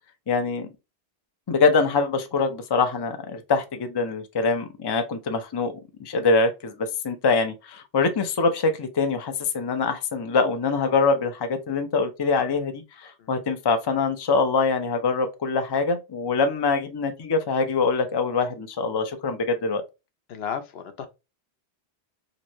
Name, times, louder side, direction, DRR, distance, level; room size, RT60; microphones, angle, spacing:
voice 1, 0.3-0.7 1.5-5.7 6.0-19.8, left 4 dB, 35° left, 0.4 m, -24 dB
voice 2, 20.3-21.1, left 7 dB, 75° left, 0.8 m, -33 dB
3.0 x 2.6 x 3.0 m
omnidirectional pair, 1.1 m